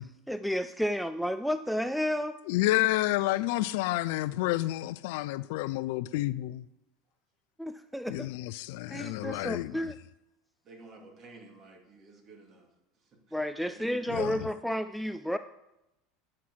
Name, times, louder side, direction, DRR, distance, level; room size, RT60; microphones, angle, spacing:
voice 1, 0.0-2.4 7.6-8.3 8.9-10.0 13.3-15.4, equal, ahead, 0.4 m, -32 dB
voice 2, 2.5-6.7 8.1-9.8 14.1-14.5, left 17 dB, 70° left, 0.3 m, -30 dB
voice 3, 10.6-14.1, right 3 dB, 45° right, 2.8 m, -53 dB
9.8 x 5.8 x 4.7 m
hypercardioid pair, 90°, 0 cm